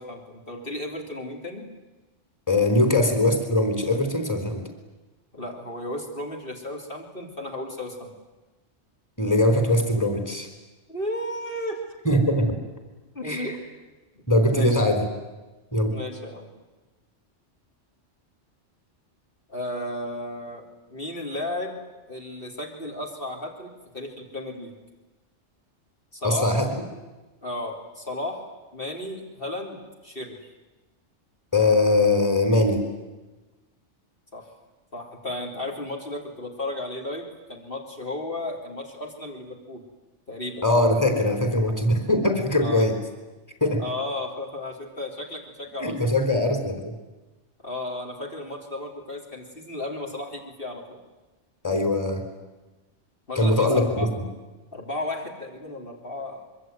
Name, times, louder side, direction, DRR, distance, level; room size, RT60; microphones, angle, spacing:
voice 1, 0.0-1.7 5.3-8.1 10.9-11.8 13.2-13.6 14.5-14.8 15.9-16.5 19.5-21.7 22.1-24.7 26.1-26.5 27.4-28.4 28.7-29.8 30.0-30.4 34.3-34.4 34.9-39.8 40.3-40.6 42.6-42.9 43.8-46.0 47.6-51.0 53.3-54.1 54.7-56.5, left 1 dB, 50° left, 0 dB, 3.6 m, -34 dB
voice 2, 2.5-4.6 9.2-10.5 12.0-12.6 13.2-13.5 14.3-15.0 15.7-16.0 26.2-26.7 31.5-32.8 40.6-43.0 43.6-43.8 45.8-46.9 51.6-52.2 53.4-54.1, left 1 dB, 15° left, 5 dB, 4.0 m, -21 dB
25.5 x 23.5 x 9.4 m, 1.1 s
omnidirectional pair, 1.2 m